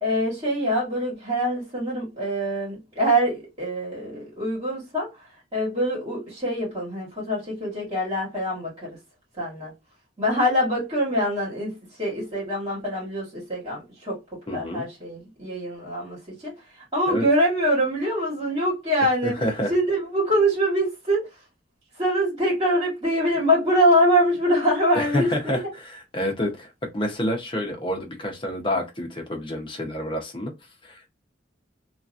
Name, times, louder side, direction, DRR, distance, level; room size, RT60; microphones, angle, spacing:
voice 1, 0.0-9.0 9.4-9.7 10.2-11.7 12.0-19.4 19.7-21.3 22.0-25.7, equal, 25° right, 1.6 m, -24 dB
voice 2, 14.5-14.9 17.1-17.3 19.2-19.7 24.9-25.6 26.1-26.7 26.9-30.5 30.8-31.1, equal, 30° left, 0.9 m, -28 dB
2.9 x 2.4 x 2.5 m
head